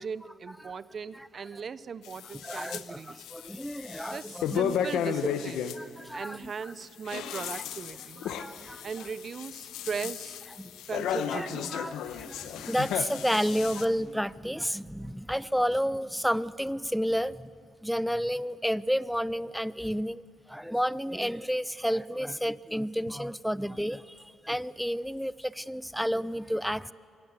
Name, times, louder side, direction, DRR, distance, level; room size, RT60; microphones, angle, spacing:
voice 1, 0.0-3.3 4.0-5.7 6.1-8.3 8.8-10.4 10.9-11.7, right 6 dB, 45° right, 17 dB, 0.7 m, -38 dB
sound 1, 2.0-2.8 3.2-5.8 6.8-13.9, left 9 dB, 85° left, 0.9 m, -34 dB
voice 2, 2.4-3.0 3.3-4.7 5.8-6.5 8.2-8.8 10.6-10.7 11.3-17.5 17.8-20.2 20.5-26.9, equal, ahead, 19 dB, 0.5 m, -31 dB
23.0 x 18.5 x 8.2 m, 2.2 s
cardioid pair, 90°, 0 cm